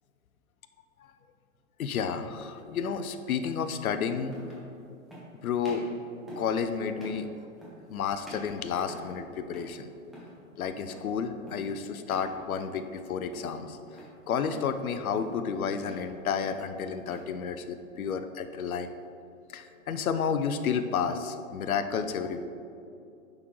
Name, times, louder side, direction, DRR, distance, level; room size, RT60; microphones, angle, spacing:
voice 1, 1.8-4.3 5.4-5.9 6.4-7.3 7.9-9.9 10.6-13.8 14.3-18.9 19.5-22.4, left 6 dB, 90° left, 10 dB, 0.6 m, -31 dB
sound 1, 2.1-2.3 3.6-3.7 4.3-4.7 5.1-5.3 5.6-5.9 6.3-6.6 7.0-7.3 7.6-7.9 8.2-9.2 9.5-9.8 10.0-10.4 10.9-11.1 11.5-11.7 12.1-12.3 12.7-13.0 13.3-14.1 14.5-14.8 15.2-15.5 15.8-16.1 16.4-17.3, equal, ahead, 0.8 m, -48 dB
9.6 x 3.8 x 3.1 m, 2.7 s
hypercardioid pair, 145°, 41 cm